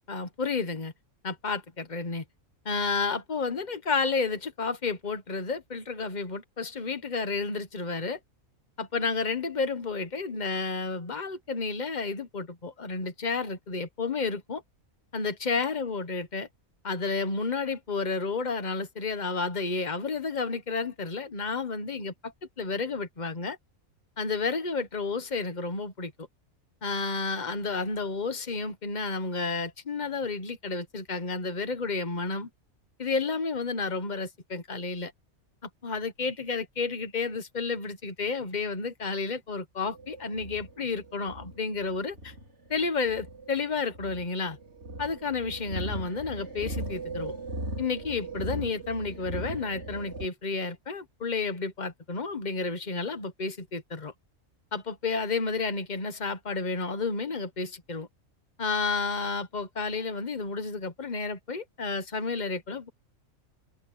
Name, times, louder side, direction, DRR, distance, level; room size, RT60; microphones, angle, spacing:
voice 1, 0.1-0.9 1.2-2.2 2.6-8.2 8.8-14.6 15.1-16.5 16.8-23.6 24.2-26.3 26.8-32.5 33.0-35.1 35.8-42.3 42.7-44.6 45.0-47.3 47.8-54.1 54.7-58.1 58.6-62.9, left 4 dB, 35° left, 1.4 m, -31 dB
sound 1, 39.9-50.3, right 2 dB, 55° right, 4.7 m, -38 dB
omnidirectional pair, 1.4 m